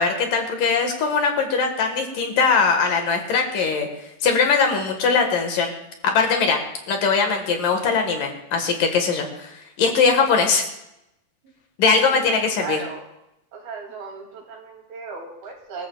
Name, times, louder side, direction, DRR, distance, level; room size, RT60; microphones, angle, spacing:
voice 1, 0.0-3.9 4.2-5.7 6.0-6.6 6.9-10.6 11.8-12.8, left 5 dB, 65° left, 4 dB, 3.0 m, -21 dB
voice 2, 12.1-13.1 13.5-15.9, right 5 dB, 70° right, 1 dB, 4.4 m, -36 dB
25.5 x 14.5 x 2.3 m, 0.86 s
omnidirectional pair, 4.5 m